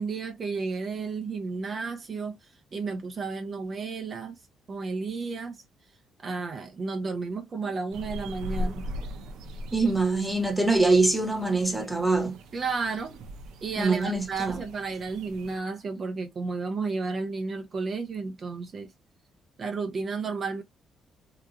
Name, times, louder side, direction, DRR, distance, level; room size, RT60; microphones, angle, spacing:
voice 1, 0.0-4.4 4.7-5.6 6.2-8.9 12.5-13.2 13.6-18.9 19.6-20.6, right 4 dB, 45° right, 0.6 m, -32 dB
sound 1, 7.9-15.6, equal, 85° right, 0.5 m, -39 dB
voice 2, 9.7-12.4 13.8-14.6, right 3 dB, 5° right, 1.1 m, -24 dB
2.9 x 2.4 x 2.5 m
cardioid pair, 90°, 0 cm